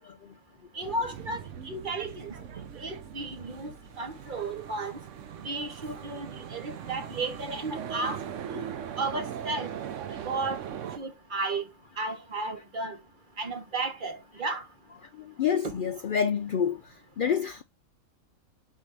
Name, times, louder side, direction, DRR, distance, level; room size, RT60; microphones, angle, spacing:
voice 1, 0.7-2.3 2.7-3.7 4.0-5.0 5.4-8.2 8.5-8.6 9.0-9.7 10.2-10.6 11.0-11.6 12.0-13.0 13.4-14.6, right 3 dB, 40° right, 1.1 m, -33 dB
sound 1, 0.8-11.0, right 9 dB, 65° right, 1.0 m, -40 dB
voice 2, 15.2-16.8 17.2-17.6, left 7 dB, 80° left, 0.4 m, -27 dB
5.5 x 4.6 x 4.7 m
omnidirectional pair, 1.5 m